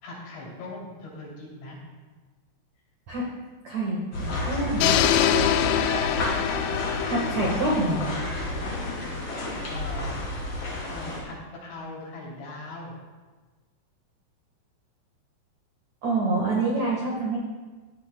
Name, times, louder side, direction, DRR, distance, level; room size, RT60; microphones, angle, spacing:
voice 1, 0.0-1.8 5.3-5.8 6.2-7.2 8.5-10.1 10.9-12.9, left 2 dB, 60° left, -4 dB, 5.1 m, -40 dB
voice 2, 3.6-4.9 7.0-8.0 16.0-17.4, right 2 dB, 75° right, -4 dB, 1.6 m, -26 dB
sound 1, 4.1-11.2, left 1 dB, 30° left, 3.4 m, -31 dB
sound 2, 4.8-8.8, left 10 dB, 90° left, 3.3 m, -25 dB
16.5 x 12.5 x 2.3 m, 1.3 s
omnidirectional pair, 5.9 m